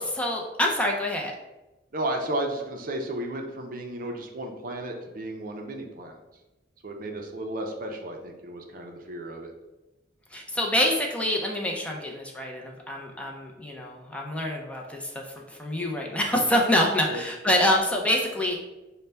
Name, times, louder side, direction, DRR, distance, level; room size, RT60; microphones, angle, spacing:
voice 1, 0.0-1.3 10.3-18.6, left 1 dB, 10° left, 0 dB, 0.5 m, -26 dB
voice 2, 1.9-6.2 6.8-9.5 17.1-17.2, right 1 dB, 55° right, 3 dB, 0.5 m, -33 dB
5.4 x 2.1 x 3.3 m, 1.0 s
head